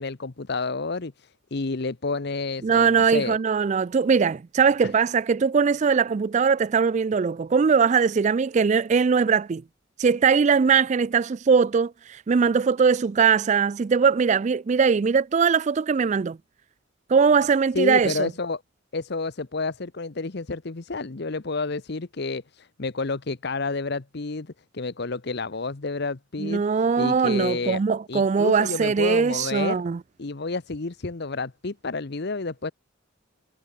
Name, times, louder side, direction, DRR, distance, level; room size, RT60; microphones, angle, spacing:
voice 1, 0.0-3.4 17.7-18.6 18.9-26.6 27.0-27.8 28.1-29.8 30.2-32.7, left 3 dB, 55° left, 0.9 m, -30 dB
voice 2, 2.6-9.6 10.0-16.4 17.1-18.3 26.4-30.0, right 5 dB, 35° right, 0.3 m, -21 dB
head